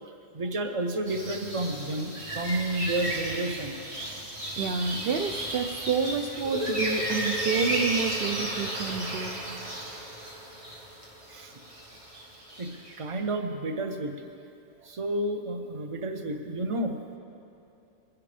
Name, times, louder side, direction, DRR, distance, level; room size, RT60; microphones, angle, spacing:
voice 1, 0.0-3.8 11.3-11.6 12.6-12.7 13.0-14.1 14.8-17.2, right 1 dB, 30° right, 5 dB, 0.7 m, -31 dB
sound 1, 1.1-13.0, right 1 dB, 45° right, 1.8 m, -34 dB
voice 2, 4.6-9.4, right 6 dB, 65° right, 4 dB, 0.5 m, -29 dB
sound 2, 6.4-11.8, left 1 dB, 10° right, 1.7 m, -37 dB
22.5 x 10.5 x 3.4 m, 2.7 s
omnidirectional pair, 1.6 m